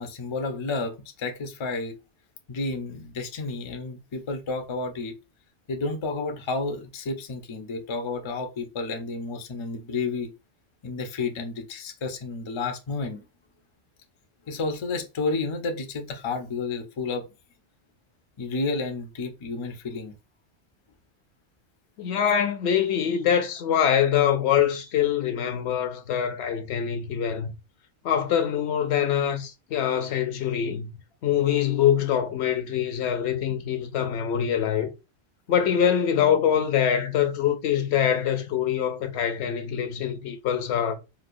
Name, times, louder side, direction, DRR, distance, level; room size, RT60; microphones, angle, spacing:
voice 1, 0.0-2.0 2.5-5.1 5.7-10.3 10.8-13.2 14.5-17.3 18.4-20.1, left 3 dB, 50° left, 0.3 m, -31 dB
voice 2, 22.0-27.5 28.0-30.9 31.2-34.9 35.5-40.9, left 9 dB, 70° left, 0.8 m, -24 dB
4.1 x 2.2 x 2.5 m
omnidirectional pair, 1.2 m